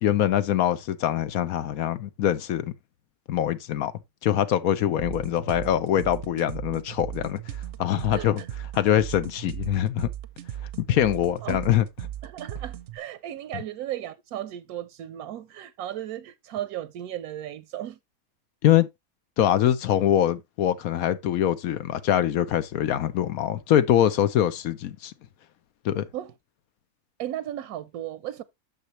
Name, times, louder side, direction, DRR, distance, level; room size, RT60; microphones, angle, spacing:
voice 1, 0.0-2.7 3.3-3.9 4.2-8.4 8.7-10.1 10.9-11.9 13.5-13.6 18.6-18.9 19.4-25.1 25.8-26.0, left 11 dB, 80° left, 1.1 m, -23 dB
sound 1, 5.0-13.0, right 11 dB, 60° right, 0.8 m, -37 dB
voice 2, 8.1-8.5 11.4-11.6 12.2-18.0 26.1-26.3 27.2-28.4, right 12 dB, 85° right, 1.1 m, -35 dB
9.0 x 6.6 x 2.9 m
omnidirectional pair, 1.5 m